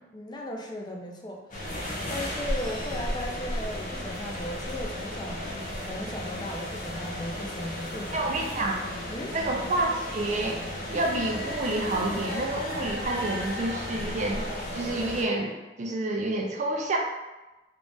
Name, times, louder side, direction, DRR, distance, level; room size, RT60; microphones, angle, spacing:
voice 1, 0.1-8.2 9.1-9.3, left 1 dB, 25° left, 0 dB, 0.5 m, -37 dB
sound 1, 1.5-15.2, left 1 dB, 45° left, 0.9 m, -34 dB
voice 2, 8.1-8.8 9.3-10.6 10.9-14.4 14.7-17.0, right 2 dB, 40° right, 0 dB, 0.4 m, -29 dB
3.6 x 2.4 x 3.8 m, 1.1 s
head